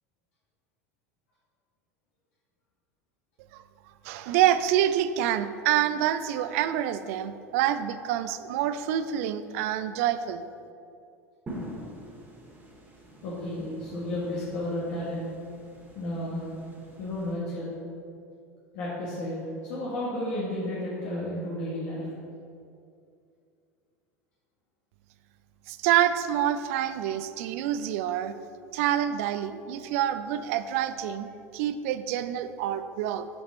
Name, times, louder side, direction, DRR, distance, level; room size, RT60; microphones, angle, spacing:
voice 1, 4.0-10.5 25.7-28.3 28.7-31.3 31.5-33.3, right 11 dB, 60° right, 12 dB, 0.4 m, -27 dB
sound 1, 11.5-17.3, right 1 dB, 20° right, 1.7 m, -45 dB
voice 2, 13.2-15.3 15.9-16.4 17.0-17.7 18.7-19.3 19.6-22.1, left 1 dB, 60° left, -7 dB, 1.5 m, -32 dB
7.1 x 5.2 x 4.1 m, 2.5 s
hypercardioid pair, 80°, 9 cm